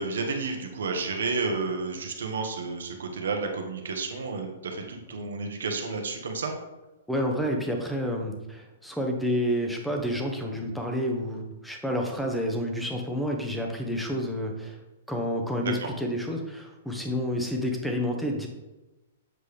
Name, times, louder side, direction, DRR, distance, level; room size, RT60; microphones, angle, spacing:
voice 1, 0.0-6.5 15.6-15.7, right 4 dB, 90° right, 3 dB, 1.2 m, -31 dB
voice 2, 7.1-14.8 15.1-18.5, equal, ahead, 1 dB, 0.8 m, -29 dB
7.6 x 5.0 x 3.3 m, 1.1 s
hypercardioid pair, 155°, 0 cm